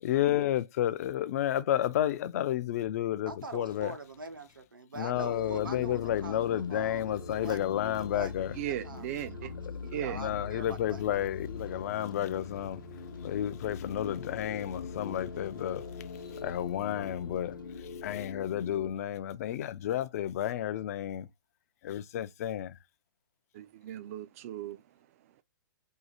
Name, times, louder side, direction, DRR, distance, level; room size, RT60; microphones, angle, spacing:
voice 1, 0.0-3.9 5.0-8.5 10.1-21.3 21.8-22.8, left 11 dB, 45° left, 0.4 m, -31 dB
voice 2, 3.3-9.3 9.7-11.0, right 3 dB, 85° right, 0.9 m, -45 dB
sound 1, 5.1-18.9, left 5 dB, 80° left, 0.8 m, -42 dB
voice 3, 8.5-9.5 9.8-10.2 23.5-25.4, right 12 dB, 45° right, 0.4 m, -38 dB
2.8 x 2.3 x 4.1 m
hypercardioid pair, 125°, 11 cm